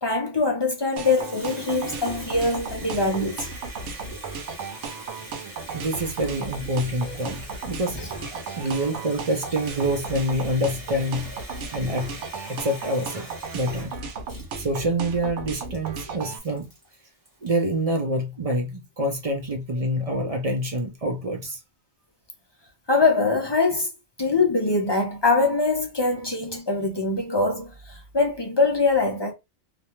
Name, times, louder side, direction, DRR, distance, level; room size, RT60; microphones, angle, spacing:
voice 1, 0.0-3.5 7.9-8.1 22.9-23.9 24.2-29.3, left 3 dB, 35° left, 0.4 m, -23 dB
Water tap faucet, 0.8-17.7, right 1 dB, 20° right, 0.8 m, -42 dB
sound 1, 1.0-16.4, right 4 dB, 85° right, 0.9 m, -35 dB
voice 2, 5.7-8.0 8.3-11.3 11.7-12.2 12.5-13.9 14.6-16.7 17.4-21.6, right 1 dB, 45° right, 0.5 m, -26 dB
2.4 x 2.2 x 2.8 m
omnidirectional pair, 1.2 m